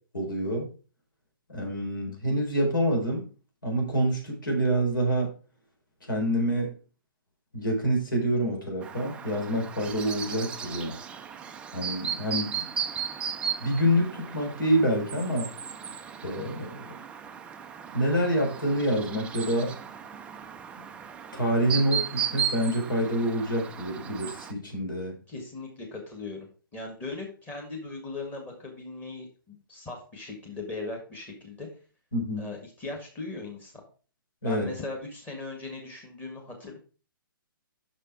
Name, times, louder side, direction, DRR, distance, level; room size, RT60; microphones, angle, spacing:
voice 1, 0.1-0.7 1.5-3.2 3.6-5.3 6.1-6.7 7.5-10.9 11.7-12.6 13.6-15.5 16.2-16.9 17.9-19.7 21.3-25.1 32.1-32.4 34.4-34.7, equal, 65° left, 1 dB, 4.3 m, -27 dB
Chirp tweet, 8.8-24.5, right 7 dB, 10° right, 0.4 m, -36 dB
voice 2, 25.3-31.7 32.4-33.8 34.4-36.8, left 3 dB, 15° left, 0 dB, 1.9 m, -39 dB
6.6 x 6.1 x 4.6 m, 0.37 s
figure-of-eight pair, 125°, 12 cm